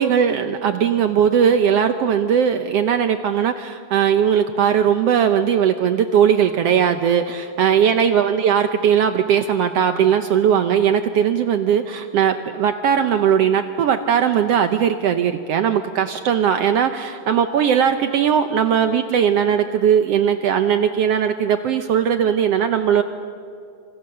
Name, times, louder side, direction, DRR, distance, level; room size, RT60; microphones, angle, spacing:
voice 1, 0.0-23.0, right 8 dB, 90° right, 8 dB, 1.3 m, -18 dB
28.0 x 26.5 x 6.6 m, 2.5 s
omnidirectional pair, 3.8 m